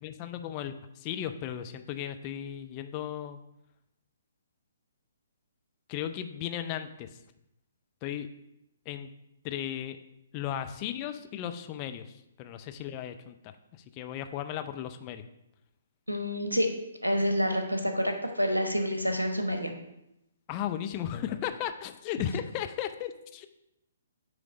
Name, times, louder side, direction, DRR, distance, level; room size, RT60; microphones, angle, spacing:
voice 1, 0.0-3.4 5.9-7.1 8.0-8.3 8.9-9.1 9.4-10.0 10.3-13.5 13.9-15.2 20.5-23.5, left 10 dB, 25° left, 8 dB, 0.4 m, -35 dB
voice 2, 16.1-16.7 17.0-19.7, equal, 85° right, 5 dB, 1.0 m, -28 dB
8.9 x 3.2 x 4.8 m, 0.85 s
figure-of-eight pair, 125°, 0 cm